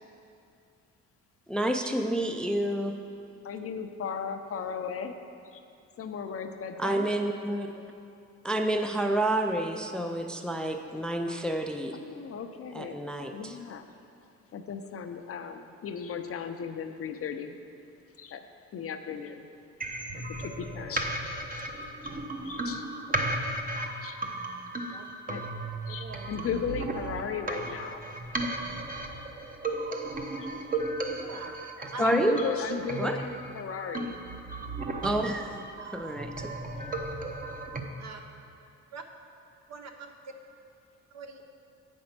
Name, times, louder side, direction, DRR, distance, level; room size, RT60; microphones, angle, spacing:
voice 1, 1.5-3.0 6.8-7.7 8.4-12.0 12.7-13.6 31.8-32.4 33.0-33.2 35.0-35.5 35.8-36.5, right 1 dB, 5° left, 5 dB, 0.4 m, -29 dB
voice 2, 3.4-5.2 5.5-5.6 6.0-7.1 11.9-13.0 13.3-13.8 14.5-17.6 18.2-18.4 18.7-19.5 20.1-21.2 22.0-22.2 22.4-22.9 24.0-24.2 25.3-25.4 25.9-28.1 32.0-34.2, left 6 dB, 50° left, 7 dB, 0.6 m, -36 dB
sound 1, 19.8-37.8, right 2 dB, 30° right, 0.8 m, -35 dB
voice 3, 25.9-26.3 31.2-31.6 31.9-32.2 38.0-38.2 38.9-39.0 39.7-40.3 41.1-41.4, right 4 dB, 60° right, 5 dB, 0.9 m, -43 dB
8.6 x 5.3 x 5.9 m, 2.5 s
cardioid pair, 90°, 30 cm